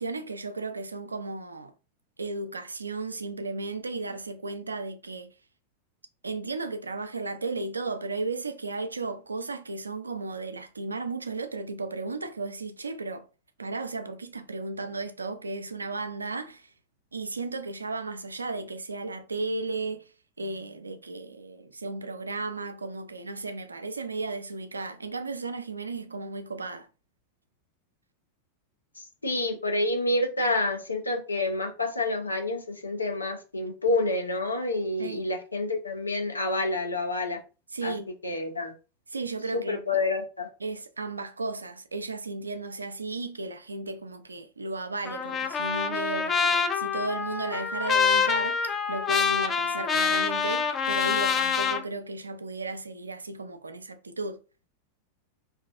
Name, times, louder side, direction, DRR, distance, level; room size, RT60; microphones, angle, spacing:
voice 1, 0.0-1.7 2.2-5.3 6.2-13.3 13.6-16.7 17.1-20.1 20.4-26.9 35.0-35.3 37.7-38.1 39.1-40.0 40.6-54.4, right 3 dB, 80° right, 0.3 m, -34 dB
voice 2, 29.2-37.4 37.8-37.9 38.2-38.7 39.5-40.5, left 2 dB, 80° left, 0.5 m, -28 dB
Trumpet, 45.0-51.8, left 6 dB, 20° left, 0.4 m, -26 dB
2.3 x 2.3 x 2.4 m
figure-of-eight pair, 90°, 0 cm